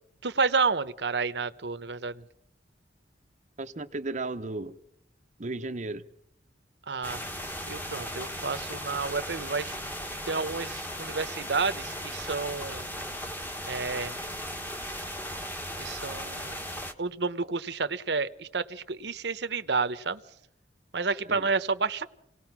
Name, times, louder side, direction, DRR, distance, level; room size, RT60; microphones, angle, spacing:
voice 1, 0.2-2.2 6.9-7.2 7.7-9.7 10.3-12.8 13.7-14.1 15.8-16.6 17.0-20.2 20.9-22.1, right 4 dB, 70° right, 0.9 m, -30 dB
voice 2, 3.6-4.8 5.4-6.0 21.3-21.5, right 2 dB, 45° right, 0.8 m, -34 dB
sound 1, 7.0-16.9, equal, 10° left, 1.4 m, -37 dB
28.0 x 18.5 x 6.1 m
head